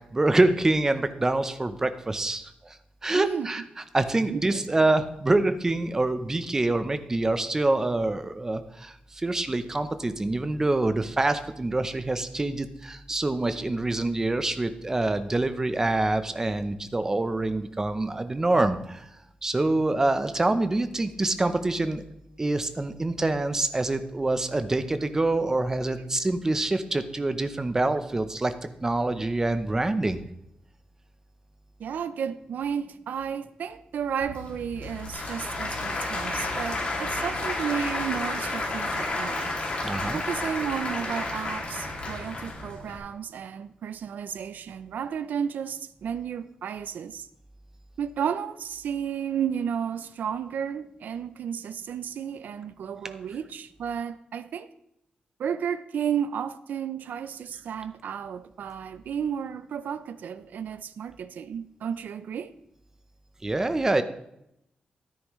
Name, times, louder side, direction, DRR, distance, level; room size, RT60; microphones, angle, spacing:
voice 1, 0.1-2.8 3.0-3.6 3.9-19.1 19.4-22.0 22.4-28.5 28.8-30.2 39.8-40.2 63.4-64.0, right 2 dB, 20° right, 0.7 m, -26 dB
voice 2, 3.1-3.7 4.2-4.6 31.8-39.5 40.1-47.3 48.0-54.7 55.4-62.5, right 8 dB, 80° right, 0.5 m, -32 dB
Applause / Crowd, 34.2-43.0, left 2 dB, 45° left, 2.5 m, -31 dB
13.0 x 10.0 x 3.1 m
wide cardioid pair, 155°, 3 cm